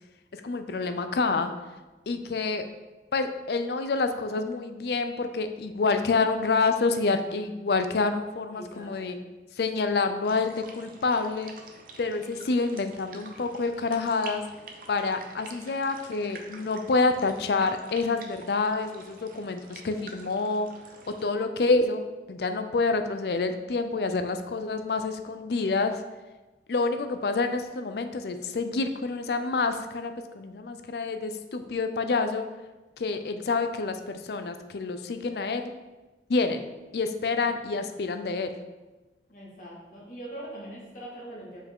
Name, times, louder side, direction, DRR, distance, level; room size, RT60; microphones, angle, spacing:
voice 1, 0.3-1.5 2.1-2.7 3.1-9.2 9.6-11.5 12.0-14.4 14.9-20.7 21.1-22.0 22.3-26.0 26.7-32.5 33.0-35.6 36.3-36.6 36.9-38.6, left 3 dB, 65° left, 8 dB, 0.4 m, -27 dB
voice 2, 8.5-9.1 37.3-37.9 39.3-41.6, right 1 dB, 50° left, -5 dB, 1.8 m, -43 dB
sound 1, 10.2-21.2, right 3 dB, 50° right, 0.7 m, -47 dB
5.5 x 4.7 x 3.6 m, 1.1 s
head